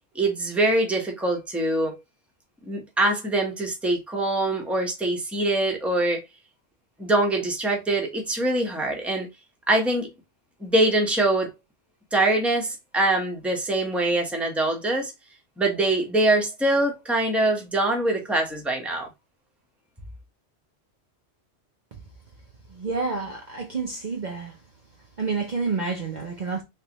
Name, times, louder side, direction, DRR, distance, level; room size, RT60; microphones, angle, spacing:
voice 1, 0.1-2.0 2.7-6.2 7.0-9.3 9.7-10.1 10.6-11.5 12.1-15.1 15.6-19.1, right 2 dB, ahead, 0.9 m, -23 dB
voice 2, 22.7-24.6 25.2-26.6, right 4 dB, 45° right, 0.7 m, -29 dB
3.4 x 3.2 x 2.9 m
omnidirectional pair, 1.2 m